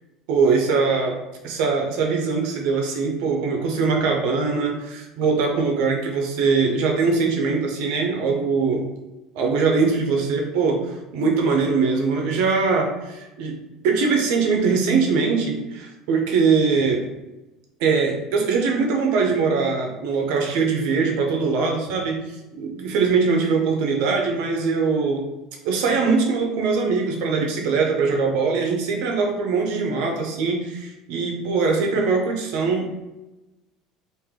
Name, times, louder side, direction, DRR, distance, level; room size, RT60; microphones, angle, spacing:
voice 1, 0.3-1.2 1.4-8.8 9.3-13.6 13.8-17.0 17.8-22.2 22.5-25.3 25.6-33.0, right 4 dB, 70° right, 1 dB, 0.7 m, -22 dB
3.3 x 2.6 x 3.6 m, 1.0 s
cardioid pair, 150°, 0 cm